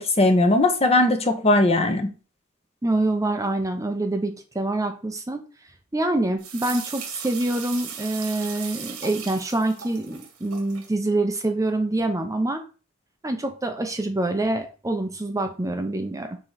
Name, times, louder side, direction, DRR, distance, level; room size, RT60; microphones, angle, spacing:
voice 1, 0.0-2.1, left 2 dB, 30° left, 6 dB, 1.0 m, -19 dB
voice 2, 2.8-5.4 5.9-12.6 13.2-16.4, right 2 dB, 15° right, 5 dB, 0.7 m, -26 dB
sound 1, 6.4-10.9, right 7 dB, 85° right, 1.6 m, -37 dB
5.0 x 3.9 x 5.7 m, 0.34 s
head